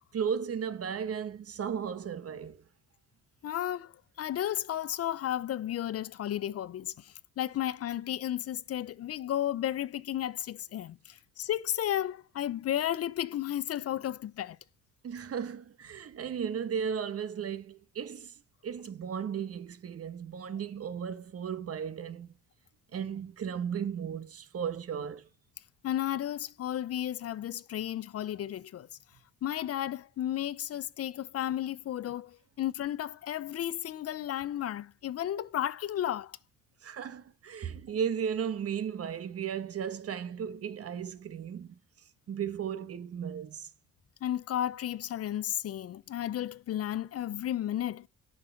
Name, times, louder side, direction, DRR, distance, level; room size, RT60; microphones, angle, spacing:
voice 1, 0.1-2.6 15.0-18.3 18.6-22.3 22.9-25.2 36.8-41.8 42.3-43.7, right 7 dB, 50° right, 1.2 m, -35 dB
voice 2, 3.4-3.9 4.2-14.6 25.8-28.9 29.4-36.4 44.2-48.1, left 11 dB, 50° left, 0.5 m, -33 dB
7.6 x 6.7 x 5.7 m
cardioid pair, 90°, 30 cm